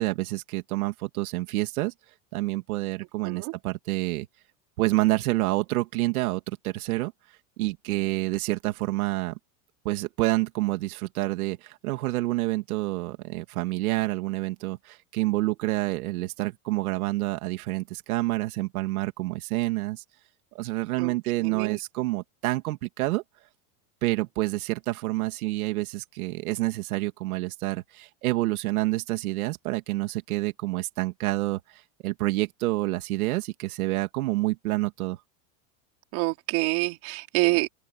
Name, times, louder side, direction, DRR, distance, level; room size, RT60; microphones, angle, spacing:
voice 1, 0.0-1.9 2.3-4.3 4.8-7.1 7.6-9.4 9.8-20.0 20.5-23.2 24.0-35.2, right 19 dB, 85° right, 2.8 m, -28 dB
voice 2, 21.4-21.8 36.1-37.7, right 24 dB, 45° right, 3.9 m, -27 dB
open air
supercardioid pair, 175°, 42 cm